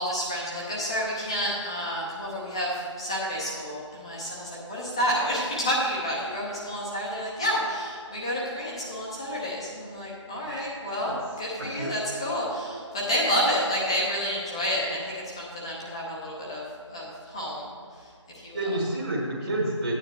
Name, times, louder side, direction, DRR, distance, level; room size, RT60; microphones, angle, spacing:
voice 1, 0.0-2.7 3.0-16.6 16.9-17.7 18.4-18.6, equal, 10° left, -6 dB, 0.7 m, -29 dB
voice 2, 11.6-11.9 18.5-19.9, right 1 dB, 35° right, -7 dB, 1.6 m, -29 dB
13.5 x 9.1 x 3.2 m, 2.1 s
figure-of-eight pair, 165°, 16 cm